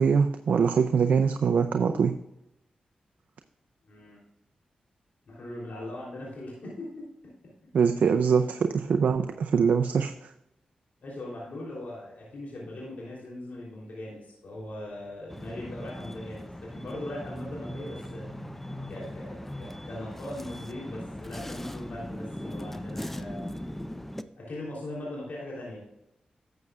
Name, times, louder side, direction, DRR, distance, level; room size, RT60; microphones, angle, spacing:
voice 1, 0.0-2.1 7.7-10.3, right 6 dB, 75° right, 6 dB, 0.5 m, -23 dB
voice 2, 3.8-4.2 5.3-7.1 8.8-9.1 9.5-9.6 11.0-18.3 18.9-23.6 24.4-25.8, left 1 dB, 75° left, -5 dB, 3.3 m, -40 dB
sound 1, 15.3-24.2, left 1 dB, 10° left, 0.6 m, -39 dB
12.0 x 7.8 x 2.4 m, 0.86 s
cardioid pair, 50°, 3 cm